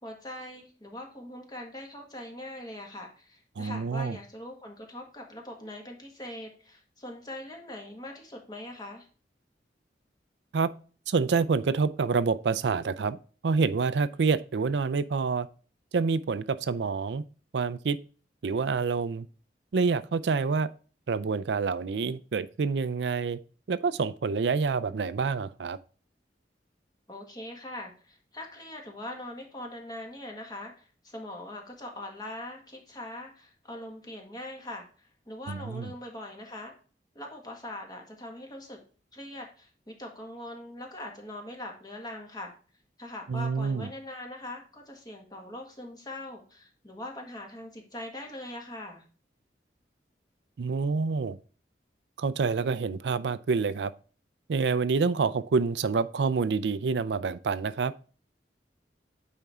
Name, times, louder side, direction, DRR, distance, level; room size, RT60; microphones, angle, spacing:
voice 1, 0.0-9.1 27.1-36.7 37.1-38.8 39.1-42.5 43.0-49.0, left 1 dB, 25° left, 1.7 m, -42 dB
voice 2, 3.6-4.2 10.5-10.7 11.1-13.2 13.4-15.5 15.9-17.2 17.5-18.0 18.4-19.3 19.7-20.7 21.1-23.4 23.7-25.8 35.5-35.9 43.3-43.9 50.6-51.4 52.2-53.9 54.5-57.9, right 4 dB, 75° right, 0.4 m, -27 dB
9.1 x 4.4 x 3.6 m
head